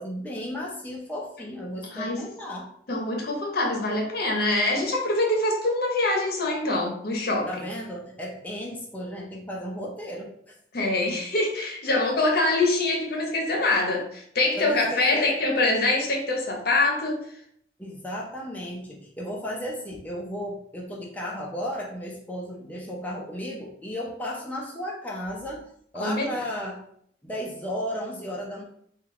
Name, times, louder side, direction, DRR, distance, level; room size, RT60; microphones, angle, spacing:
voice 1, 0.0-2.7 7.5-11.1 14.6-15.3 17.8-25.7 25.9-26.8 27.2-28.6, equal, 10° left, -3 dB, 0.5 m, -34 dB
voice 2, 1.9-2.3 2.9-7.5 10.7-17.2 26.0-26.4, left 2 dB, 60° left, 1 dB, 0.8 m, -24 dB
3.6 x 2.3 x 3.6 m, 0.67 s
head